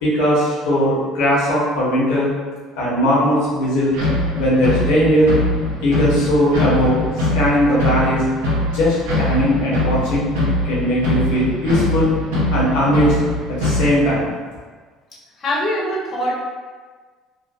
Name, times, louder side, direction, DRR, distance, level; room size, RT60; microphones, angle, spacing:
voice 1, 0.0-2.3 2.7-4.0 4.4-5.3 5.8-8.2 8.7-10.3 10.6-12.2 12.5-13.2 13.5-14.3, equal, 80° left, -7 dB, 0.9 m, -18 dB
sound 1, 3.9-14.0, left 1 dB, 85° right, 0.6 m, -22 dB
voice 2, 15.4-16.4, equal, 45° left, -5 dB, 0.8 m, -23 dB
2.4 x 2.1 x 2.4 m, 1.5 s
supercardioid pair, 80°, 0 cm